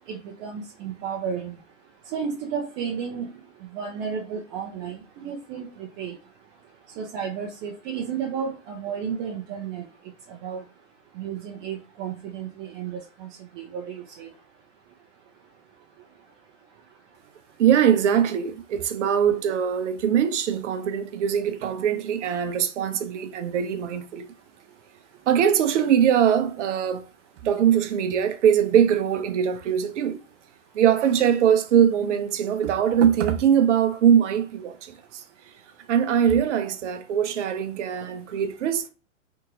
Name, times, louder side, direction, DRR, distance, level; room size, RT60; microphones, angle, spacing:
voice 1, 0.1-1.6 2.1-3.3 3.7-6.2 7.0-9.8 10.3-10.6 11.2-13.3 13.6-14.3, right 7 dB, 25° right, 0.5 m, -32 dB
voice 2, 17.6-24.3 25.3-27.0 27.4-30.2 30.7-35.2 35.9-38.9, right 8 dB, 65° right, 0.7 m, -22 dB
3.6 x 2.6 x 2.8 m
hypercardioid pair, 115°, 39 cm